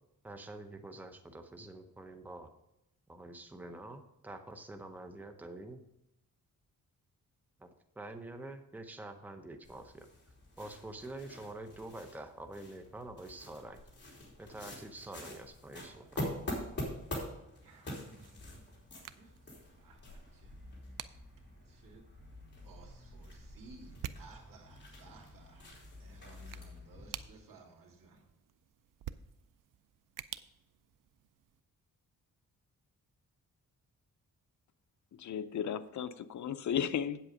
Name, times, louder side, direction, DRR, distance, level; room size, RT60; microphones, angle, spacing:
voice 1, 0.2-2.5 3.1-5.8 7.6-7.7 8.0-10.1 10.6-13.8 14.4-16.2, right 2 dB, 5° right, 0.7 m, -47 dB
sound 1, 9.6-27.3, left 1 dB, 35° left, 3.3 m, -46 dB
voice 2, 16.0-18.8 19.1-20.6 21.7-22.1 22.6-28.2, right 3 dB, 90° right, 2.4 m, -58 dB
sound 2, 17.9-31.6, right 11 dB, 70° right, 0.5 m, -51 dB
voice 3, 35.1-37.2, left 8 dB, 60° left, 0.6 m, -35 dB
8.4 x 8.0 x 5.0 m
wide cardioid pair, 120°, 33 cm